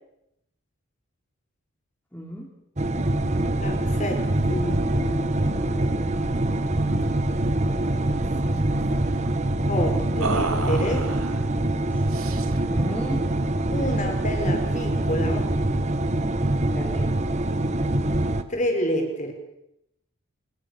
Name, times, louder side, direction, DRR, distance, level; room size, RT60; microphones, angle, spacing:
voice 1, 2.1-2.6 11.9-12.0 12.7-13.3 16.5-17.2, equal, 10° left, -1 dB, 2.8 m, -36 dB
sound 1, 2.8-18.4, right 1 dB, 30° right, 1.3 m, -24 dB
voice 2, 3.6-5.9 8.4-8.5 9.7-11.1 13.7-15.5 18.5-19.3, equal, 35° left, 4 dB, 5.3 m, -29 dB
sound 2, 6.9-7.1 7.3-7.5 7.9-8.6 10.2-11.4 12.1-12.7, right 3 dB, 75° right, 2.2 m, -32 dB
24.5 x 22.0 x 6.9 m, 0.82 s
head